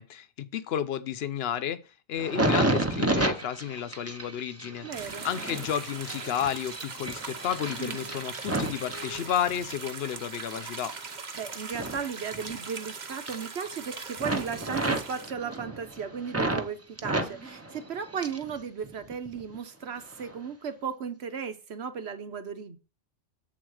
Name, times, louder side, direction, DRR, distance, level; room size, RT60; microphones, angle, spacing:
voice 1, 0.0-1.8 2.1-10.9, left 9 dB, 65° left, 0.9 m, -32 dB
sound 1, 2.2-9.8 10.3-12.9 13.1-13.9 14.2-16.7 17.0-18.5 18.8-19.6 20.1-20.3, right 2 dB, 15° right, 0.7 m, -32 dB
voice 2, 4.8-5.3 7.8-8.1 11.4-22.8, right 6 dB, 70° right, 1.2 m, -35 dB
sound 2, 4.9-15.3, right 4 dB, 45° right, 1.0 m, -41 dB
7.8 x 4.1 x 6.3 m
omnidirectional pair, 1.1 m